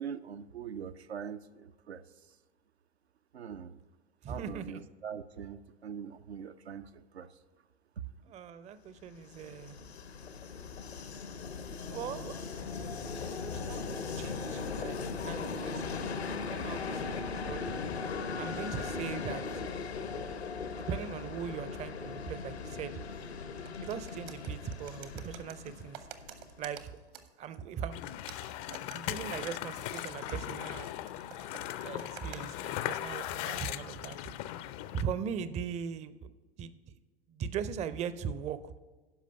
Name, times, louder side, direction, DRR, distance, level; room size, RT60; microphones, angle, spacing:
voice 1, 0.0-2.0 3.3-3.8 4.3-7.3, right 7 dB, 85° right, 10 dB, 0.5 m, -42 dB
voice 2, 4.2-4.8 8.3-9.8 11.9-12.4 13.4-15.0 15.2-16.2 16.5-17.6 18.4-19.4 20.8-22.9 23.8-26.0 26.6-26.9 27.4-28.0 28.5-30.9 31.8-34.2 34.9-36.2 36.6-37.0 37.3-38.7, right 7 dB, 20° right, 14 dB, 0.5 m, -39 dB
Train, 9.1-26.8, left 4 dB, 80° left, 0.9 m, -39 dB
sound 1, 23.5-27.8 28.3-32.5, right 10 dB, 60° right, 1.0 m, -51 dB
sound 2, 27.9-35.0, left 13 dB, 40° left, 0.4 m, -38 dB
11.5 x 5.0 x 5.6 m, 1.3 s
figure-of-eight pair, 85°, 32 cm